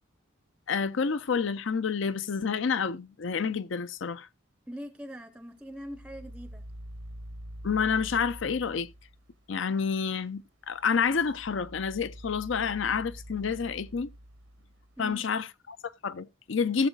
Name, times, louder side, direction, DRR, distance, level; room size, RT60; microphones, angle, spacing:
voice 1, 0.7-4.3 7.6-8.9 9.5-14.1 15.0-16.9, left 6 dB, 65° left, 0.6 m, -29 dB
voice 2, 4.7-6.6 15.0-15.3, equal, 5° right, 0.6 m, -42 dB
sound 1, 5.7-9.4 10.7-15.1, equal, 90° right, 1.2 m, -46 dB
18.0 x 7.2 x 2.3 m
head